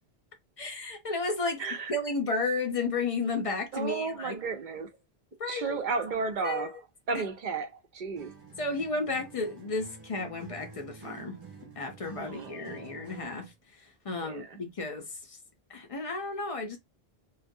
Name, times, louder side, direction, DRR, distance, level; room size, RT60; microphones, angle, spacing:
voice 1, 0.6-1.6 1.9-4.4 5.4-5.8 6.4-6.7 8.6-11.4 11.8-13.5 14.0-15.1 15.7-16.8, left 3 dB, 45° left, 0.5 m, -32 dB
voice 2, 1.6-2.0 3.7-4.9 5.5-6.8 7.1-8.3 12.2-13.0 14.2-14.6, right 4 dB, 55° right, 0.6 m, -34 dB
Acoustic guitar, 8.1-13.5, right 4 dB, 25° right, 0.8 m, -49 dB
2.4 x 2.3 x 2.6 m
omnidirectional pair, 1.1 m